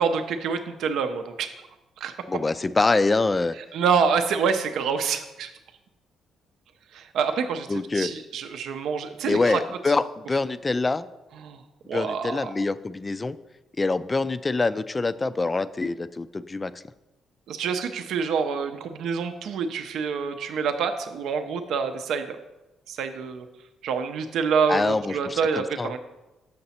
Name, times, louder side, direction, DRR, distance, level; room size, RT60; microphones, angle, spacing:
voice 1, 0.0-1.5 2.0-2.1 3.7-5.5 6.9-7.7 7.9-9.6 11.4-11.6 11.9-12.4 17.5-22.4 22.9-23.5 23.8-26.0, right 6 dB, 75° right, 7 dB, 0.5 m, -26 dB
voice 2, 2.3-3.6 7.7-8.1 9.2-11.0 11.9-13.4 13.8-16.7 24.7-25.9, left 3 dB, 25° left, 15 dB, 0.3 m, -25 dB
6.6 x 5.8 x 4.2 m, 1.0 s
cardioid pair, 90°, 0 cm